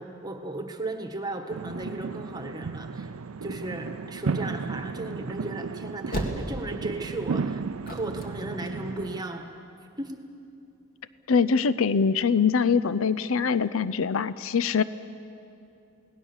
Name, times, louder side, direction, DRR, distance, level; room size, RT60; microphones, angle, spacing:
voice 1, 0.0-3.1 3.4-9.5 10.0-10.2, right 2 dB, 20° right, 4 dB, 1.5 m, -35 dB
sound 1, 1.5-9.2, right 4 dB, 75° right, 0.5 m, -34 dB
sound 2, 4.6-9.6, equal, 40° left, 2.3 m, -35 dB
voice 2, 11.3-14.8, left 5 dB, 65° left, 15 dB, 0.5 m, -23 dB
28.5 x 18.5 x 7.2 m, 2.6 s
head